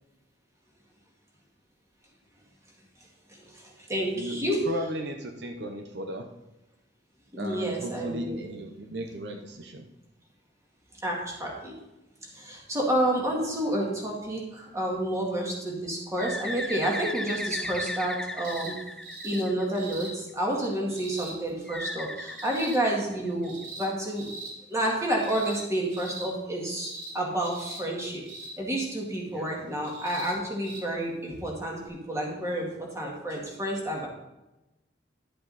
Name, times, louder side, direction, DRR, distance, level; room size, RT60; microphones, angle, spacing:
voice 1, 3.3-4.6 7.3-8.5 11.0-11.7 12.3-18.8 19.2-24.3 24.7-28.2 28.6-34.1, right 1 dB, 15° right, -2 dB, 2.1 m, -30 dB
voice 2, 4.1-6.3 7.4-9.9 29.3-29.5, equal, 65° right, 4 dB, 0.8 m, -35 dB
Bird, 16.2-19.9 21.7-23.5, left 1 dB, 5° left, 0.3 m, -36 dB
sound 1, 18.4-18.7 19.0-19.4 19.7-20.1 20.9-21.3 22.3-22.8 23.4-23.9 24.2-24.5 25.2-25.6 25.9-26.3 26.8-27.1 27.4-27.8 28.3-28.5 29.8-30.3 30.6-30.8 31.9-32.0, right 2 dB, 85° right, 3.7 m, -41 dB
11.5 x 7.6 x 4.2 m, 0.97 s
head